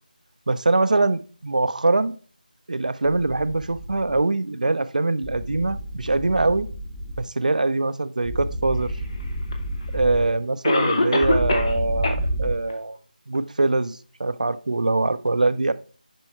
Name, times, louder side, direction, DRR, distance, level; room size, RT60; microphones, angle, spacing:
voice 1, 0.5-2.1 2.7-6.7 7.2-8.9 9.9-13.0 13.3-15.7, right 2 dB, 60° right, 0.6 m, -23 dB
sound 1, 3.6-4.2 5.2-7.3 8.3-10.3 11.2-12.5, right 1 dB, 5° left, 0.7 m, -30 dB
Cough, 9.5-9.6 10.6-11.8 12.0-12.1 12.7-12.8 13.3-13.4, left 2 dB, 35° left, 1.1 m, -22 dB
7.6 x 5.4 x 4.4 m
figure-of-eight pair, 165°, 5 cm